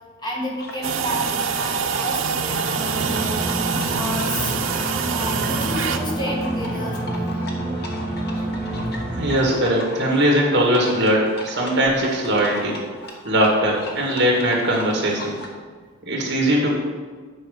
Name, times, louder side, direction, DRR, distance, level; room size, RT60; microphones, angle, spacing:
voice 1, 0.2-3.4 3.8-4.7 5.1-7.0, equal, 20° left, -3 dB, 1.4 m, -31 dB
sound 1, 0.6-15.5, left 1 dB, 50° left, 1.2 m, -38 dB
sound 2, 0.8-6.0, right 6 dB, 80° right, 0.6 m, -25 dB
sound 3, 2.7-9.4, right 1 dB, 5° left, 2.2 m, -28 dB
voice 2, 9.2-12.8 13.2-15.4 16.0-16.7, equal, 55° right, -1 dB, 1.9 m, -20 dB
8.6 x 5.2 x 5.1 m, 1.5 s
head